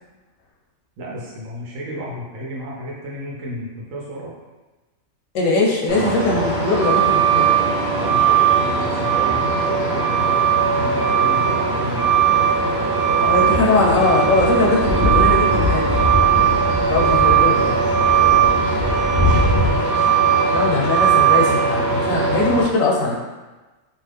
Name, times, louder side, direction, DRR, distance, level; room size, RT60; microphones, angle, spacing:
voice 1, 1.0-4.3 7.9-10.4 10.7-12.1 17.2-20.1, equal, 75° right, -4 dB, 1.0 m, -32 dB
voice 2, 5.3-7.5 13.2-15.9 16.8-17.6 20.5-23.2, left 3 dB, 85° left, -2 dB, 1.0 m, -20 dB
Truck, 5.9-22.6, right 6 dB, 45° right, 0.9 m, -18 dB
sound 1, 11.9-12.4 13.3-19.8, left 2 dB, 65° left, 0.3 m, -24 dB
2.4 x 2.4 x 3.3 m, 1.2 s
omnidirectional pair, 1.4 m